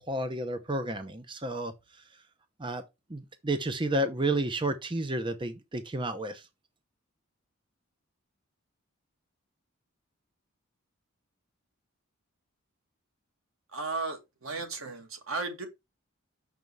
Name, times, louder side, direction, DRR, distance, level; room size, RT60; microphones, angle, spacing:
voice 1, 0.1-1.7 2.6-2.8 3.1-6.4, right 1 dB, 25° right, 0.7 m, -31 dB
voice 2, 13.7-15.7, right 3 dB, 85° right, 2.1 m, -35 dB
6.7 x 5.4 x 4.7 m
head